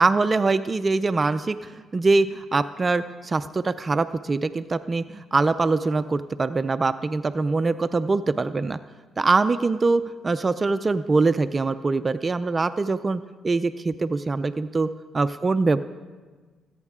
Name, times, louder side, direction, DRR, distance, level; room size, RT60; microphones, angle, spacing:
voice 1, 0.0-8.8 9.2-14.9 15.1-15.8, right 3 dB, 30° right, 12 dB, 0.4 m, -23 dB
23.0 x 9.0 x 3.6 m, 1.4 s
cardioid pair, 90°, 0 cm